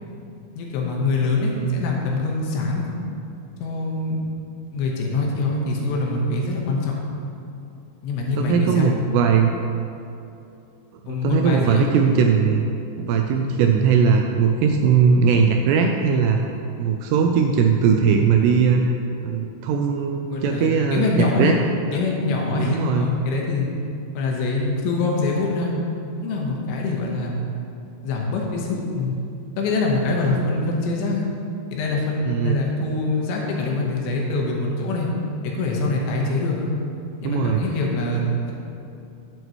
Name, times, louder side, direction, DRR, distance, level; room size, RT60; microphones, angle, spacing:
voice 1, 0.6-2.9 3.6-4.2 4.7-6.9 8.0-8.9 11.1-11.9 20.3-21.5 21.9-23.7 24.1-25.7 26.2-27.5 28.0-29.3 29.6-31.2 31.7-35.1 35.6-36.7 37.2-38.5, left 3 dB, 80° left, -1 dB, 3.3 m, -24 dB
voice 2, 8.4-9.5 11.0-12.6 13.0-16.4 16.8-21.6 22.6-23.1 32.3-32.6 37.2-37.6, right 6 dB, 85° right, 3 dB, 2.5 m, -19 dB
10.5 x 8.2 x 3.0 m, 2.7 s
omnidirectional pair, 5.2 m